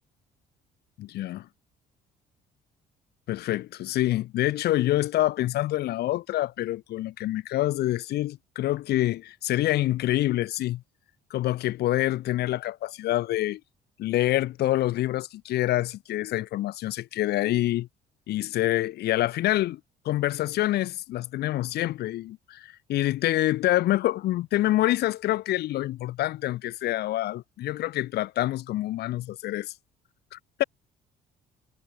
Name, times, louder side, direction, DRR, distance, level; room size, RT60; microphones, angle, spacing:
voice 1, 1.0-1.5 3.3-10.8 11.3-13.6 14.0-17.9 18.3-19.8 20.0-29.7 30.3-30.6, left 15 dB, 75° left, 2.3 m, -26 dB
cardioid pair, 110°, 17 cm